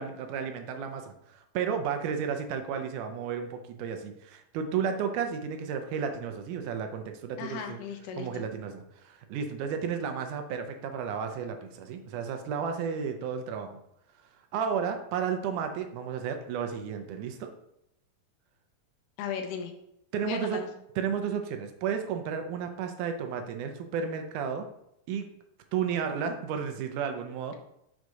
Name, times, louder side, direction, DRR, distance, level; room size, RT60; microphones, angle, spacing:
voice 1, 0.0-7.8 8.2-13.8 14.5-17.5 20.1-20.6 21.0-24.7 25.1-25.3 25.7-27.6, right 7 dB, 75° right, 6 dB, 2.0 m, -33 dB
voice 2, 7.4-8.4 19.2-19.7 20.2-20.7, left 6 dB, 80° left, 5 dB, 2.3 m, -36 dB
6.3 x 3.9 x 4.7 m, 0.80 s
omnidirectional pair, 3.9 m